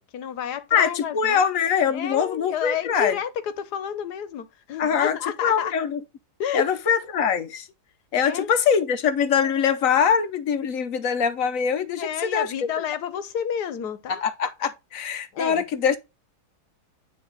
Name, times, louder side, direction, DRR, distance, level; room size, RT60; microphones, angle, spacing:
voice 1, 0.0-1.5 1.9-5.7 6.4-6.6 8.2-8.5 12.0-14.2 15.3-15.6, left 8 dB, 90° left, 1.5 m, -30 dB
voice 2, 0.7-3.2 4.8-6.0 6.5-7.7 8.1-12.7 14.1-16.0, left 7 dB, 65° left, 1.0 m, -23 dB
9.7 x 3.3 x 3.8 m
omnidirectional pair, 1.7 m